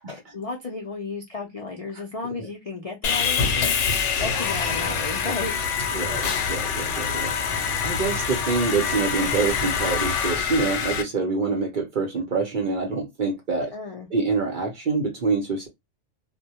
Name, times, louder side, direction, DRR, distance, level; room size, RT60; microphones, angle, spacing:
voice 1, 0.3-4.0 4.2-5.6 13.7-14.1, left 3 dB, 55° left, 0.4 m, -33 dB
Sawing, 3.0-11.0, left 6 dB, 80° left, 0.9 m, -25 dB
voice 2, 5.9-7.3 7.6-13.7 14.1-15.7, right 4 dB, 55° right, 0.6 m, -26 dB
2.1 x 2.0 x 2.8 m
omnidirectional pair, 1.3 m